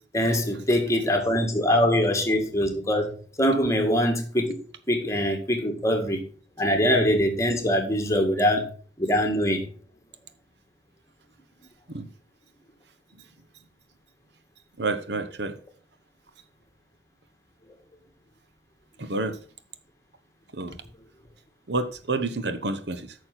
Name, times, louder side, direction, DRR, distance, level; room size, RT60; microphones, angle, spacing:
voice 1, 0.1-4.6 4.9-6.2 6.6-8.7 9.0-9.7, equal, 20° left, 1.8 m, -23 dB
voice 2, 14.8-15.6 19.0-19.4 20.5-20.8 21.7-23.1, right 3 dB, 70° right, 1.0 m, -29 dB
9.0 x 6.4 x 5.9 m
head